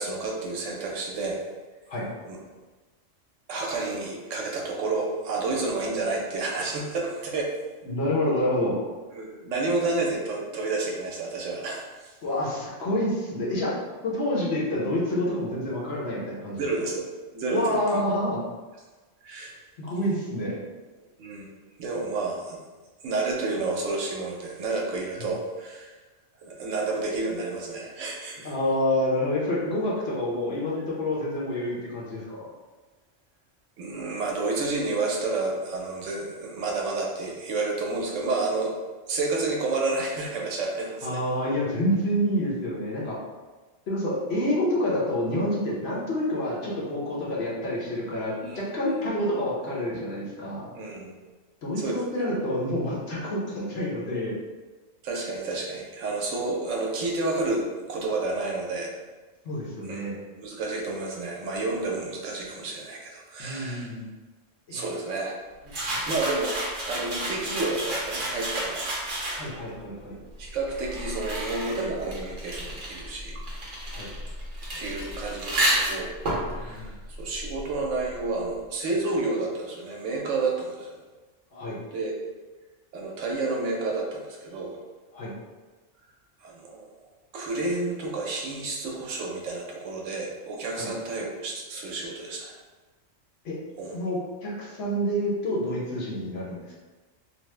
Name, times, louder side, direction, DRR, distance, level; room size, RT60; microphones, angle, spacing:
voice 1, 0.0-1.4 2.3-2.4 3.5-7.5 9.1-12.1 16.6-17.1 17.3-17.8 19.2-19.5 21.2-21.5 21.8-22.6 23.0-26.0 26.4-28.5 33.8-38.7 39.1-41.2 48.4-49.0 50.8-51.1 51.8-52.3 55.0-58.9 59.8-60.1 60.4-63.9 64.7-65.4 66.0-66.5 66.8-68.8 70.4-73.4 74.7-76.1 76.5-81.0 81.9-82.2 82.9-84.8 86.4-86.9 87.3-92.5 93.8-93.9, right 3 dB, 75° right, -1 dB, 0.9 m, -30 dB
voice 2, 7.9-8.8 12.2-13.7 14.0-16.7 17.5-18.4 19.8-20.6 25.2-25.3 28.4-32.5 41.0-43.2 43.9-50.7 51.6-54.4 59.4-60.2 63.4-64.1 64.7-64.9 65.9-66.0 69.4-70.2 73.9-74.1 76.5-76.9 81.5-81.8 85.1-85.3 90.7-90.9 93.4-93.5 93.9-96.7, left 1 dB, 60° left, -5 dB, 0.9 m, -28 dB
sound 1, 65.7-69.7 70.5-77.9, right 1 dB, 50° right, 0.7 m, -31 dB
2.9 x 2.0 x 3.1 m, 1.3 s
omnidirectional pair, 1.3 m